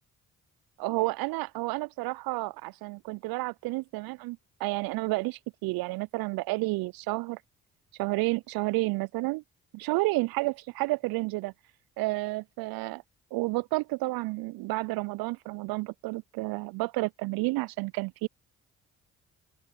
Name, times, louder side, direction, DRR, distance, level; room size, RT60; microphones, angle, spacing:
voice 1, 0.8-7.4 8.0-9.4 9.7-11.5 12.0-13.0 13.3-18.3, right 22 dB, 60° right, 0.6 m, -31 dB
open air
figure-of-eight pair, 40°, 41 cm